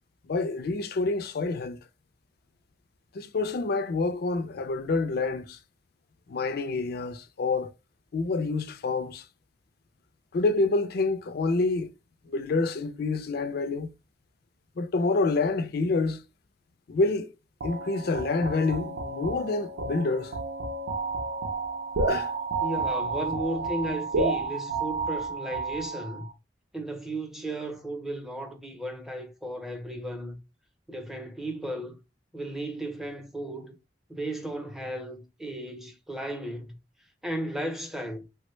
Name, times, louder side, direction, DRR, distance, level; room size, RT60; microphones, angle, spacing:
voice 1, 0.3-1.8 3.1-5.6 6.3-7.7 8.1-9.3 10.3-11.9 12.2-13.9 14.8-16.2 16.9-17.3 17.6-20.4 22.0-22.3, left 3 dB, 60° left, 0.4 m, -27 dB
sound 1, 17.6-26.3, right 3 dB, 90° right, 0.6 m, -31 dB
voice 2, 22.6-26.3 26.7-30.4 30.9-32.0 32.3-33.8 34.1-36.7 37.2-38.2, right 1 dB, ahead, 0.6 m, -35 dB
3.3 x 2.1 x 3.0 m
head